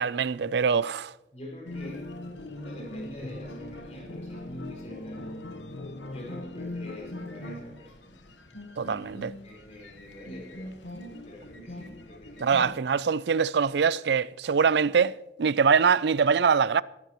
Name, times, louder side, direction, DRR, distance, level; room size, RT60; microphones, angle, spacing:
voice 1, 0.0-1.1 8.8-9.3 12.4-16.8, right 6 dB, 75° right, 0.4 m, -23 dB
voice 2, 1.3-2.1 2.5-5.4 6.1-8.2 8.8-10.7 11.2-12.5, left 1 dB, 35° left, 5.6 m, -46 dB
sound 1, 1.6-12.8, left 1 dB, 90° left, 1.3 m, -41 dB
23.0 x 12.5 x 3.0 m
head